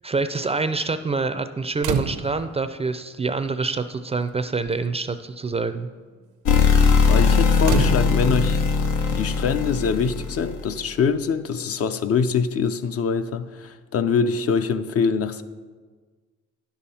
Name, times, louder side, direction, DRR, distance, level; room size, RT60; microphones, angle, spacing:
voice 1, 0.0-5.9, right 4 dB, 20° right, 0.4 m, -26 dB
sound 1, 1.8-2.5 3.6-3.7 4.1-4.4 4.7-4.9 7.6-8.5 10.1-10.2, right 7 dB, 85° right, 0.7 m, -27 dB
sound 2, 6.4-10.7, left 5 dB, 90° left, 0.8 m, -20 dB
voice 2, 7.1-8.6 9.1-15.4, left 6 dB, 50° left, 0.5 m, -24 dB
10.0 x 7.2 x 4.2 m
cardioid pair, 90°, 30 cm